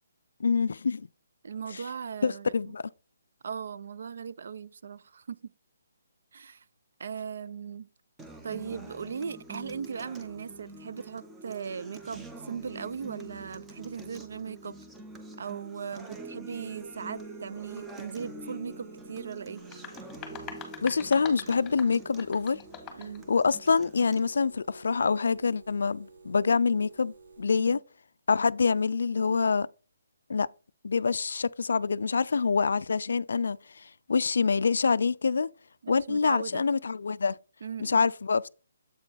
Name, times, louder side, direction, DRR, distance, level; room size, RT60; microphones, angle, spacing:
voice 1, 0.4-1.1 1.7-1.8 2.2-2.8 20.8-22.6 23.3-27.8 28.3-29.7 30.3-30.5 30.8-35.5 35.9-37.4 37.8-38.5, left 5 dB, 75° left, 0.3 m, -26 dB
voice 2, 1.4-2.7 3.4-5.4 6.3-6.6 7.0-7.9 8.4-14.8 15.4-19.6 22.9-23.3 27.5-27.8 35.8-36.6 37.6-38.1, right 6 dB, 60° right, 0.4 m, -38 dB
Acoustic guitar, 8.2-24.2, right 2 dB, 10° right, 0.7 m, -46 dB
sound 1, 16.7-27.4, right 3 dB, 80° right, 1.3 m, -53 dB
sound 2, 19.6-23.2, left 7 dB, 10° left, 1.6 m, -43 dB
7.8 x 4.4 x 4.1 m
hypercardioid pair, 160°, 0 cm